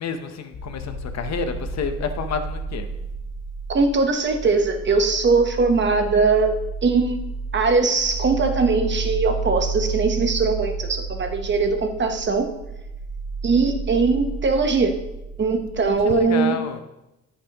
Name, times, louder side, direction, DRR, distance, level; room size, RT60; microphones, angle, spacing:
voice 1, 0.0-2.9 16.0-16.8, left 6 dB, 60° left, 8 dB, 0.9 m, -29 dB
sound 1, 0.5-16.2, right 4 dB, 80° left, 2.1 m, -31 dB
voice 2, 3.7-6.5 6.8-7.2 7.5-12.5 13.4-14.9 15.4-16.6, right 4 dB, 40° right, 6 dB, 1.0 m, -20 dB
14.0 x 5.6 x 3.0 m, 0.94 s
cardioid pair, 90°, 30 cm